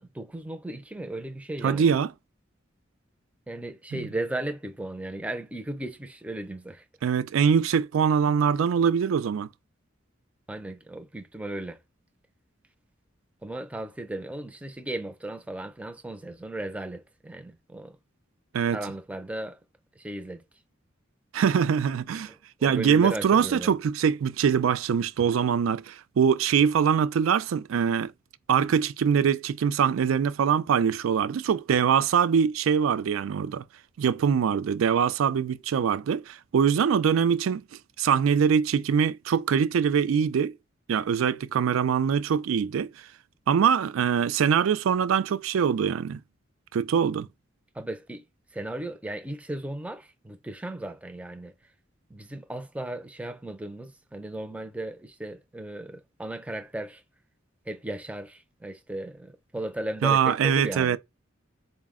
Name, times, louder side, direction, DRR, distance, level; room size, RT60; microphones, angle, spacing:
voice 1, 0.0-2.0 3.5-6.8 10.5-11.8 13.4-18.0 18.7-19.6 20.0-20.4 22.3-23.8 47.7-48.3 48.5-51.5 52.1-57.0 57.7-61.0, right 1 dB, 5° right, 0.4 m, -36 dB
voice 2, 1.6-2.1 3.9-4.0 7.0-9.5 18.5-18.8 21.3-22.3 22.6-28.1 28.5-33.6 34.0-37.6 38.0-40.5 40.9-42.9 43.5-46.2 46.7-47.3 60.0-61.0, right 7 dB, 90° right, 0.4 m, -23 dB
4.0 x 2.1 x 3.6 m
head